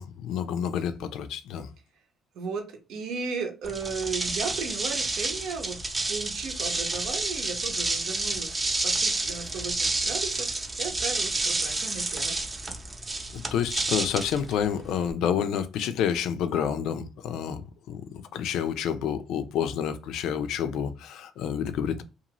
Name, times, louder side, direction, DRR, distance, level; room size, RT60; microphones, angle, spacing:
voice 1, 0.0-1.7 13.3-22.0, left 8 dB, 80° left, 0.4 m, -29 dB
voice 2, 2.3-5.8 6.1-12.4, right 5 dB, 80° right, 0.9 m, -35 dB
sound 1, 3.6-15.1, right 2 dB, 20° right, 0.6 m, -29 dB
2.6 x 2.5 x 2.9 m
cardioid pair, 100°, 0 cm